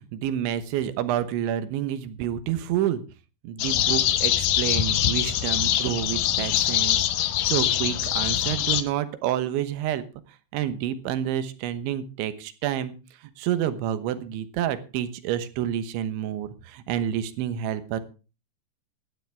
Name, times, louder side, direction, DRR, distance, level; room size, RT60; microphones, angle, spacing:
voice 1, 0.0-3.0 3.4-7.0 7.5-10.0 10.5-13.0 13.4-18.0, right 11 dB, 80° right, 12 dB, 3.5 m, -28 dB
sound 1, 3.6-8.8, left 11 dB, 80° left, 1.9 m, -23 dB
17.5 x 12.0 x 3.5 m, 0.33 s
omnidirectional pair, 5.3 m